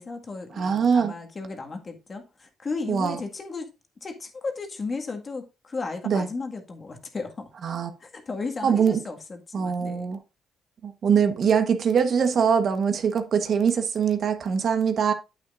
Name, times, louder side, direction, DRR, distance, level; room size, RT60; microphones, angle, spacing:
voice 1, 0.0-3.7 4.0-7.5 8.0-10.1, left 3 dB, 35° left, 1.8 m, -35 dB
voice 2, 0.6-1.1 2.9-3.2 6.0-6.3 7.6-7.9 8.6-9.0 9.5-10.2 10.8-15.1, right 6 dB, 60° right, 1.2 m, -22 dB
8.8 x 8.7 x 2.6 m
cardioid pair, 90°, 0 cm